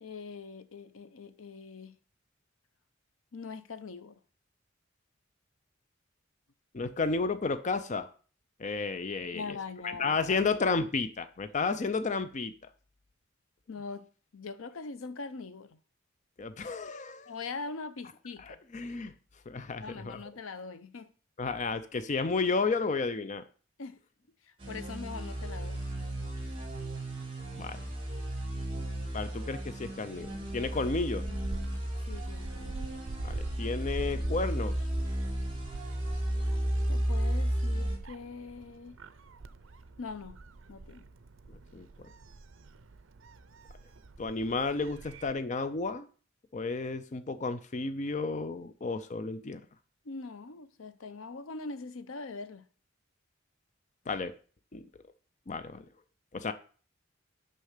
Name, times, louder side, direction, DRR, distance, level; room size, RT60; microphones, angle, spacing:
voice 1, 0.0-2.0 3.3-4.2 9.3-10.2 13.7-14.1 14.3-15.8 17.3-18.6 19.8-21.1 23.8-24.0 24.4-25.8 31.3-32.8 36.9-39.0 40.0-40.4 40.7-41.0 50.0-52.6, left 4 dB, 85° left, 0.7 m, -42 dB
voice 2, 6.7-8.1 8.6-9.6 9.8-12.5 16.4-17.3 18.5-19.1 19.5-20.2 21.4-23.4 27.5-27.8 29.1-31.2 33.2-34.7 41.7-42.1 44.2-46.1 46.5-49.6 54.1-54.3 54.7-54.9 55.5-55.9 56.3-56.5, left 4 dB, 35° left, 0.5 m, -32 dB
sound 1, 24.6-38.0, right 1 dB, 25° right, 3.1 m, -34 dB
Gull seagull, 29.9-45.3, right 3 dB, 65° right, 0.6 m, -45 dB
6.5 x 5.5 x 6.5 m
head